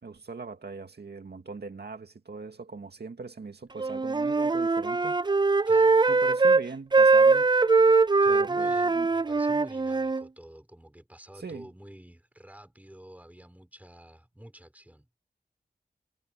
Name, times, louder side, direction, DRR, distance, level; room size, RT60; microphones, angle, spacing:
voice 1, 0.0-5.2 6.1-7.5 8.3-9.1 11.4-11.7, right 4 dB, 70° right, 2.2 m, -41 dB
Wind instrument woodwind instrument, 3.8-6.7 6.9-10.2, right 4 dB, 25° right, 0.4 m, -22 dB
voice 2, 5.7-6.0 8.2-15.1, right 1 dB, 10° right, 4.4 m, -49 dB
wide cardioid pair, 70°, 17 cm